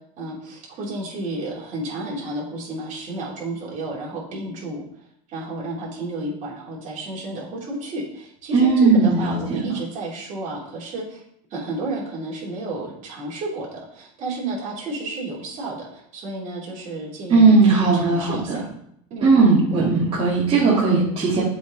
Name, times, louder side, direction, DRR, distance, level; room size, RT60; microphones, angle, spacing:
voice 1, 0.2-4.8 5.3-11.2 11.5-18.6 19.1-19.9, right 2 dB, 50° right, -4 dB, 2.9 m, -32 dB
voice 2, 8.5-9.6 17.3-18.4 19.2-21.4, right 4 dB, 35° right, -8 dB, 2.2 m, -17 dB
7.6 x 4.1 x 4.0 m, 0.70 s
supercardioid pair, 110°, 17 cm